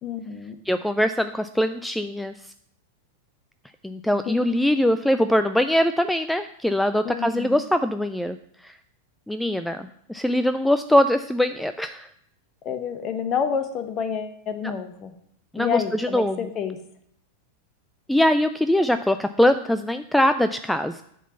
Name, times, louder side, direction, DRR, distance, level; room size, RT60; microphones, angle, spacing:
voice 1, 0.0-0.6 4.3-4.4 7.0-7.6 12.6-15.1 15.6-16.8, left 7 dB, 30° left, 9 dB, 1.0 m, -29 dB
voice 2, 0.7-2.5 3.8-8.8 9.3-12.1 14.6-14.7 15.5-16.5 18.1-21.0, left 1 dB, 5° left, 10 dB, 0.3 m, -22 dB
10.0 x 4.0 x 6.9 m, 0.70 s
figure-of-eight pair, 90°, 0 cm